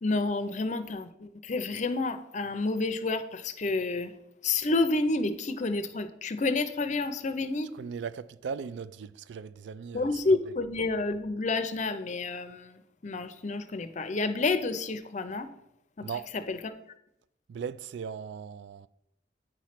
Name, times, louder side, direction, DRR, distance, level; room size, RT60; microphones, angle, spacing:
voice 1, 0.0-4.1 4.4-7.7 9.9-15.5 16.0-16.1 16.3-16.7, left 3 dB, 40° left, 0.5 m, -29 dB
voice 2, 7.8-10.2 16.0-16.3 17.5-18.9, right 6 dB, 70° right, 0.3 m, -38 dB
8.9 x 3.1 x 5.7 m
head